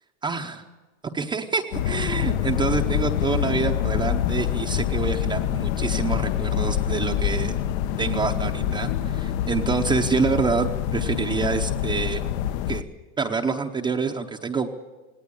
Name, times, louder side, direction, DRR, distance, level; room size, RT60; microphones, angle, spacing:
voice 1, 0.2-0.6 1.0-7.5 8.0-12.2 12.7-12.8 13.2-14.7, right 5 dB, 15° right, 2 dB, 0.8 m, -27 dB
sound 1, 1.7-12.8, left 10 dB, 65° left, 1.1 m, -26 dB
19.0 x 18.5 x 9.9 m, 1.3 s
supercardioid pair, 160°, 35 cm